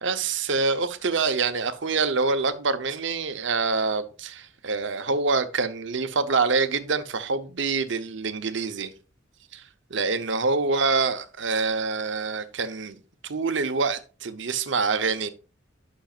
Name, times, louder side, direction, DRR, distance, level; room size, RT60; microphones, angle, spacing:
voice 1, 0.0-8.9 9.5-9.6 9.9-13.0 13.2-15.3, right 4 dB, 70° right, 0.8 m, -26 dB
12.0 x 6.3 x 2.4 m
head